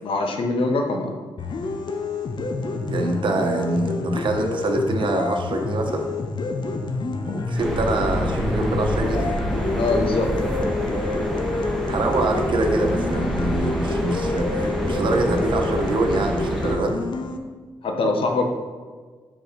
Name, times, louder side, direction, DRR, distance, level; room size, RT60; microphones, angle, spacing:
voice 1, 0.0-1.1 9.8-10.3 17.8-18.4, left 3 dB, 75° left, 3 dB, 1.0 m, -23 dB
sound 1, 1.4-17.4, left 3 dB, 55° left, 0.7 m, -28 dB
voice 2, 2.9-6.1 7.3-9.3 11.6-17.0, right 2 dB, 60° right, 3 dB, 1.0 m, -25 dB
sound 2, 7.6-16.8, equal, ahead, 1.1 m, -26 dB
5.1 x 4.8 x 5.2 m, 1.5 s
cardioid pair, 75°, 9 cm